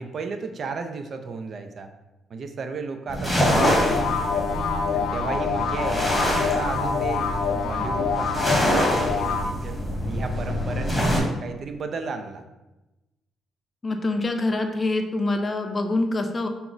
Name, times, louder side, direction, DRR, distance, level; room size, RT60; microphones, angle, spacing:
voice 1, 0.0-1.9 2.3-3.3 3.6-4.1 4.9-9.8 10.1-12.4, right 4 dB, 50° right, 7 dB, 0.4 m, -34 dB
sound 1, 3.1-11.2, equal, 5° right, 1.2 m, -25 dB
sound 2, 3.4-9.4, left 6 dB, 80° left, 0.5 m, -26 dB
voice 2, 13.8-16.5, left 2 dB, 30° left, 5 dB, 0.5 m, -25 dB
5.6 x 2.0 x 3.9 m, 1.0 s
cardioid pair, 90°, 0 cm